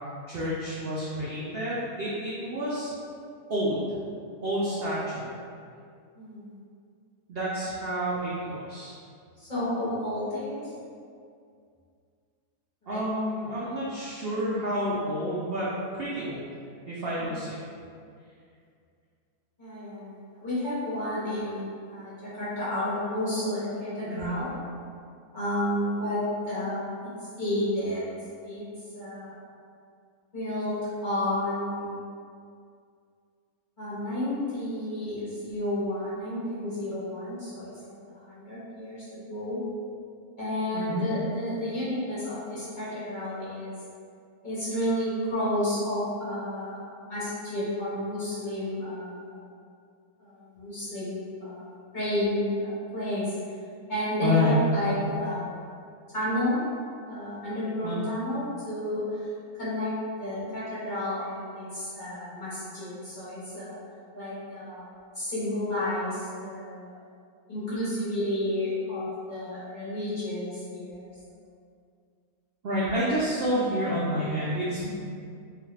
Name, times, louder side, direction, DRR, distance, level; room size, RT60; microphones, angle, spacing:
voice 1, 0.3-2.9 3.5-3.9 4.4-5.3 7.3-9.0 12.9-15.7 15.9-16.4 16.9-17.6 24.1-24.4 40.7-41.1 54.2-54.5 57.8-57.9 72.6-74.9, equal, 80° right, -8 dB, 0.5 m, -29 dB
voice 2, 6.2-6.6 9.4-10.7 12.8-13.0 13.4-13.7 17.2-17.4 19.6-24.5 25.3-26.8 27.4-28.0 28.4-28.7 28.9-29.3 30.3-30.8 31.0-31.9 33.8-37.9 38.3-39.6 40.4-43.7 44.4-46.8 47.0-49.4 50.2-53.3 53.9-55.4 56.1-56.6 57.0-59.3 59.6-59.9 60.2-63.7 64.1-64.8 65.1-66.9 67.5-71.1, left 1 dB, 45° left, -11 dB, 0.7 m, -31 dB
2.5 x 2.4 x 3.1 m, 2.3 s
omnidirectional pair, 1.6 m